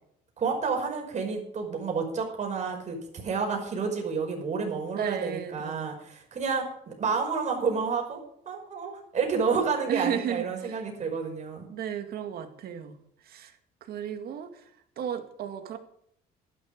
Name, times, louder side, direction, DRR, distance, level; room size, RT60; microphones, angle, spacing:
voice 1, 0.4-8.2 8.5-11.7, right 5 dB, 45° right, 2 dB, 5.3 m, -30 dB
voice 2, 4.9-5.9 9.9-10.8 11.7-13.0 13.3-13.5 13.9-14.5 15.0-15.8, right 9 dB, 65° right, 6 dB, 2.1 m, -34 dB
11.5 x 10.5 x 5.3 m, 0.71 s
cardioid pair, 110°, 17 cm